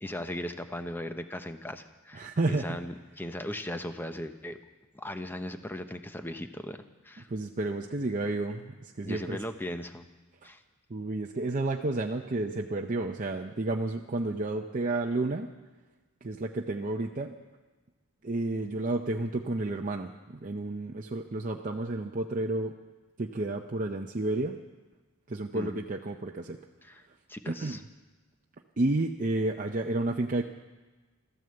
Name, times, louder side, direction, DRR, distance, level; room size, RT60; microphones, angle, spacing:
voice 1, 0.0-4.6 4.9-7.3 9.0-10.1 10.4-10.6 25.5-25.8 26.8-27.0 27.3-27.8, left 1 dB, 10° left, 8 dB, 0.8 m, -38 dB
voice 2, 2.1-2.8 7.3-9.4 10.9-15.5 16.2-17.4 18.2-22.7 23.2-24.6 25.3-26.6 27.5-27.8 28.8-30.4, right 2 dB, 35° right, 2 dB, 0.6 m, -31 dB
14.0 x 13.0 x 7.7 m, 1.2 s
head